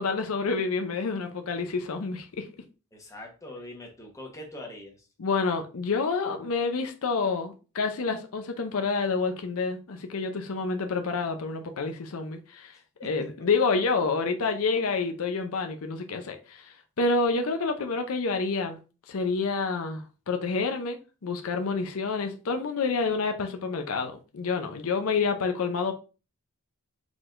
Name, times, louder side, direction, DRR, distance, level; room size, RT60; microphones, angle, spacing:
voice 1, 0.0-2.5 5.2-12.7 13.0-18.8 19.1-25.9, left 4 dB, 70° left, 0.6 m, -28 dB
voice 2, 2.9-5.1 13.0-13.3, left 1 dB, 15° left, 1.0 m, -43 dB
4.7 x 3.9 x 2.5 m
head